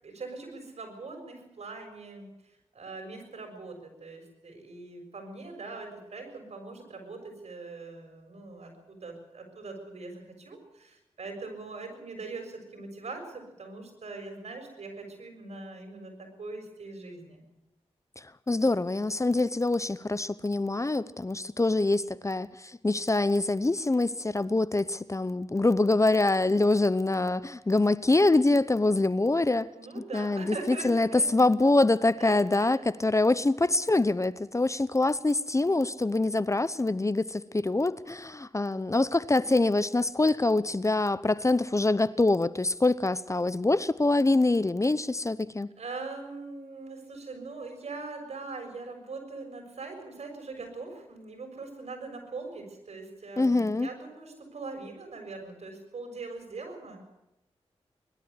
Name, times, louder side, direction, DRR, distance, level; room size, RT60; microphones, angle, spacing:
voice 1, 0.0-17.4 29.7-31.3 32.2-32.8 45.8-57.1, right 3 dB, 70° right, 3 dB, 6.7 m, -42 dB
voice 2, 18.2-29.7 30.0-45.7 53.4-53.9, left 2 dB, 25° left, 17 dB, 0.8 m, -25 dB
21.5 x 12.5 x 9.8 m, 0.92 s
cardioid pair, 45°, 11 cm